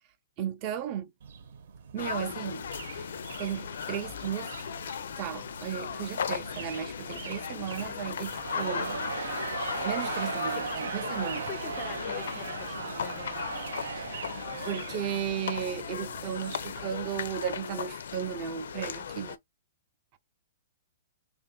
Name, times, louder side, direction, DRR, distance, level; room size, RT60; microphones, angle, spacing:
voice 1, 0.4-1.1 1.9-2.7 2.9-3.1 3.4-4.5 5.2-9.0 9.8-11.4 14.0-14.1 14.7-19.4, right 9 dB, 30° right, 0.5 m, -35 dB
sound 1, 1.2-17.6, right 6 dB, 65° right, 0.8 m, -47 dB
sound 2, 2.0-19.4, left 7 dB, 80° left, 0.5 m, -37 dB
Crowd, 8.3-15.6, right 7 dB, 85° right, 0.5 m, -37 dB
voice 2, 11.5-13.4, left 10 dB, 25° left, 0.5 m, -45 dB
3.7 x 2.5 x 3.7 m
hypercardioid pair, 165°, 0 cm